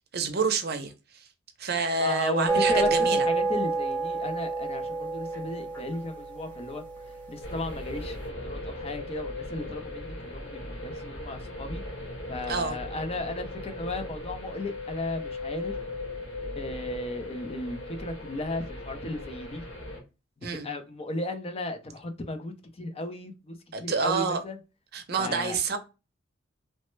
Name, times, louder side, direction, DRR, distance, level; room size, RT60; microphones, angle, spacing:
voice 1, 0.1-0.9 1.6-3.3 12.5-12.8 20.4-20.7 23.7-24.4 24.9-25.8, right 4 dB, 55° right, 0.6 m, -28 dB
voice 2, 2.0-6.8 7.3-11.8 12.3-15.7 16.6-19.6 20.5-24.6 25.2-25.6, left 2 dB, 30° left, 0.5 m, -35 dB
sound 1, 2.5-8.0, right 3 dB, 10° left, 0.9 m, -29 dB
sound 2, 7.4-20.0, left 2 dB, 75° left, 1.2 m, -38 dB
3.1 x 2.1 x 3.0 m
head